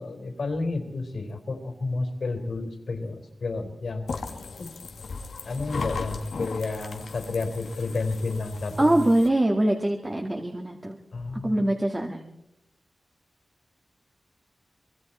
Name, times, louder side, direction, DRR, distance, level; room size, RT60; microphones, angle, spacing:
voice 1, 0.0-4.1 4.6-4.7 5.5-9.1 11.1-11.6, left 3 dB, 65° left, 4 dB, 4.1 m, -31 dB
sound 1, 4.1-9.3, left 4 dB, 80° left, 2.1 m, -37 dB
voice 2, 8.8-11.0 11.4-12.2, right 1 dB, 20° right, 1 dB, 2.2 m, -23 dB
25.5 x 24.0 x 4.4 m, 0.85 s
wide cardioid pair, 110°, 0 cm